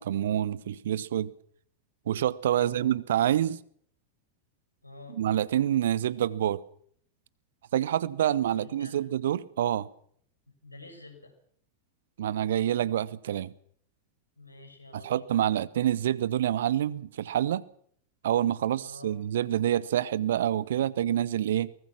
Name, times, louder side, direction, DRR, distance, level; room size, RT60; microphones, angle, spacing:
voice 1, 0.0-1.3 2.1-3.6 5.1-6.6 7.7-9.9 12.2-13.5 14.9-17.6 18.2-21.7, right 11 dB, 60° right, 0.9 m, -27 dB
voice 2, 2.5-2.9 4.8-5.2 8.5-9.0 10.5-11.3 14.4-15.3 18.8-19.1, left 3 dB, 85° left, 5.8 m, -49 dB
23.5 x 19.5 x 6.1 m
figure-of-eight pair, 90°, 0 cm